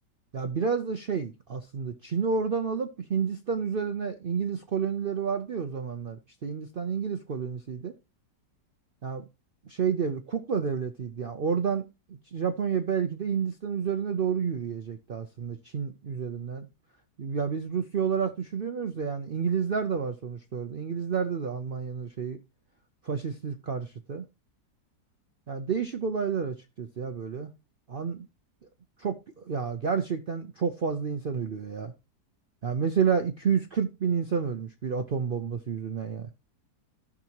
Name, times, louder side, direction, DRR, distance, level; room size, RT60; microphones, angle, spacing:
voice 1, 0.3-7.9 9.0-9.2 9.7-11.8 12.1-16.7 17.2-22.4 23.0-24.2 25.5-27.5 27.9-28.3 29.0-31.9 32.6-36.3, right 6 dB, 75° right, 0.5 m, -30 dB
14.5 x 6.1 x 2.9 m
omnidirectional pair, 1.8 m